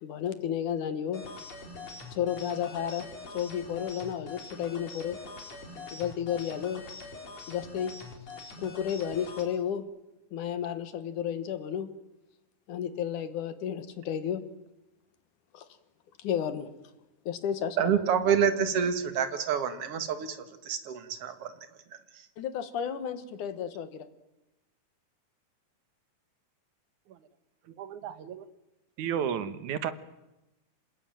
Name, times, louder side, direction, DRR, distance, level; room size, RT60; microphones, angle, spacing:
voice 1, 0.0-1.2 2.1-3.1 3.3-5.2 5.9-6.8 7.5-7.9 8.6-9.9 10.3-11.9 12.7-14.4 15.5-15.6 16.2-16.7 17.3-17.9 22.4-24.1, left 9 dB, 75° left, 12 dB, 3.0 m, -32 dB
sound 1, 1.1-9.5, left 3 dB, 55° left, 4.9 m, -44 dB
voice 2, 17.8-20.4 20.7-21.5, right 7 dB, 50° right, 9 dB, 2.7 m, -27 dB
voice 3, 27.8-28.5 29.0-29.9, right 8 dB, 75° right, 12 dB, 2.7 m, -33 dB
27.0 x 19.5 x 9.1 m, 0.96 s
omnidirectional pair, 3.6 m